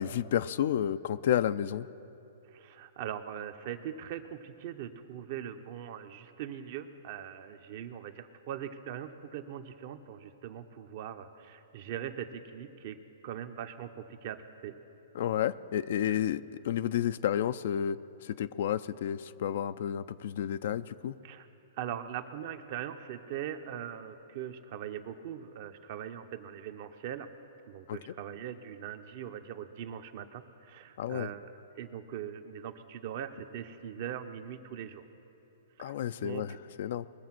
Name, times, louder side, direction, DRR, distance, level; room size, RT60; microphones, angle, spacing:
voice 1, 0.0-1.9 15.1-21.1 27.9-28.0 31.0-31.3 35.8-37.1, left 10 dB, 60° left, 14 dB, 0.4 m, -31 dB
voice 2, 2.5-13.0 13.2-14.7 16.0-16.2 21.2-21.5 21.8-27.3 27.7-35.0 35.8-35.9 36.2-36.6, right 9 dB, 50° right, 8 dB, 0.8 m, -41 dB
21.5 x 7.3 x 6.0 m, 2.9 s
hypercardioid pair, 135°, 0 cm